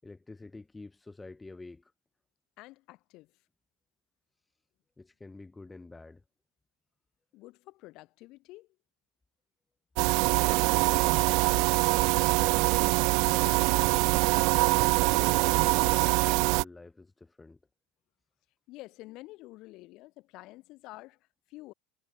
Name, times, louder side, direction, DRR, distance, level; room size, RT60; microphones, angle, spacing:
voice 1, 0.0-1.9 4.3-4.6 5.0-6.2 10.4-11.9 15.1-17.6, left 3 dB, 10° left, 4.7 m, -48 dB
voice 2, 2.6-3.3 7.3-8.7 13.3-13.9 18.7-21.2 21.5-21.7, left 20 dB, 45° left, 4.1 m, -49 dB
sound 1, 10.0-16.6, right 29 dB, 50° right, 0.6 m, -24 dB
supercardioid pair, 165°, 0 cm